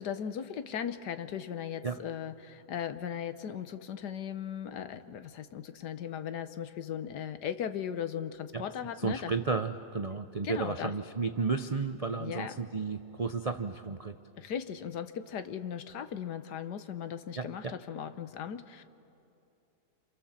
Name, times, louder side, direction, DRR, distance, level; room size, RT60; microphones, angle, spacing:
voice 1, 0.0-9.3 10.4-10.9 12.2-12.6 14.4-18.8, left 8 dB, 80° left, 11 dB, 1.6 m, -37 dB
voice 2, 9.0-14.2 17.4-17.7, right 4 dB, 75° right, 8 dB, 0.3 m, -33 dB
29.0 x 28.0 x 7.4 m, 2.7 s
omnidirectional pair, 1.8 m